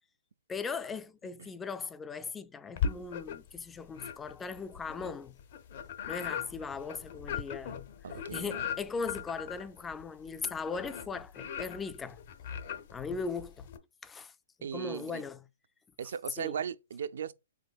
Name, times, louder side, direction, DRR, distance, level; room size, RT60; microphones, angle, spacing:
voice 1, 0.5-5.4 6.1-7.9 8.3-12.2 12.9-13.7 14.0-14.3 14.6-15.4 16.4-16.6, left 5 dB, 10° left, 0.3 m, -39 dB
sound 1, 2.8-3.6 3.9-13.8, left 7 dB, 55° left, 0.7 m, -39 dB
voice 2, 8.0-8.6 14.6-15.2 16.0-17.3, right 8 dB, 70° right, 0.4 m, -37 dB
5.1 x 3.3 x 2.3 m
hypercardioid pair, 140°, 0 cm